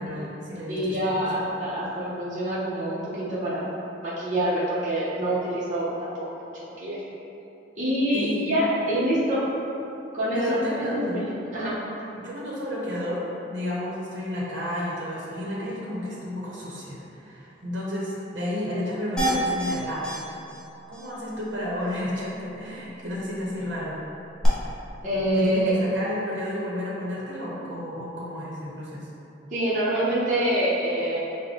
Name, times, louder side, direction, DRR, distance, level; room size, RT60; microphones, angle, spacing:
voice 1, 0.0-1.2 8.1-8.5 10.3-11.2 12.1-13.2 13.5-20.2 20.9-24.0 25.3-29.1, left 1 dB, 75° right, -6 dB, 0.8 m, -32 dB
voice 2, 0.7-3.6 4.0-6.1 6.8-7.1 7.8-9.5 10.1-11.2 11.5-11.8 25.0-25.7 29.5-31.2, right 1 dB, 40° right, -10 dB, 0.8 m, -26 dB
sound 1, 19.2-19.7 20.0-20.2 20.5-20.6 20.9-21.0 24.4-24.5, right 1 dB, 5° left, 0.8 m, -26 dB
5.2 x 2.2 x 3.7 m, 2.9 s
head